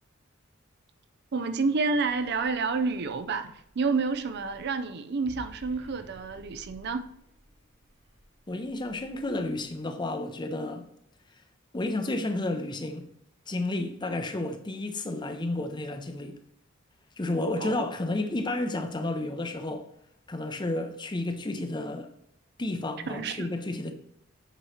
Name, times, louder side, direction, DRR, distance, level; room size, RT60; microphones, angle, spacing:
voice 1, 1.3-7.1 17.6-17.9 23.1-23.5, right 4 dB, 55° right, 0.5 m, -29 dB
sound 1, 1.9-9.9, right 1 dB, 30° right, 1.5 m, -54 dB
voice 2, 8.5-10.8 11.7-13.0 13.5-16.4 17.2-19.9 20.3-22.1 22.6-23.9, left 2 dB, 20° left, 0.6 m, -31 dB
8.1 x 3.1 x 5.6 m
head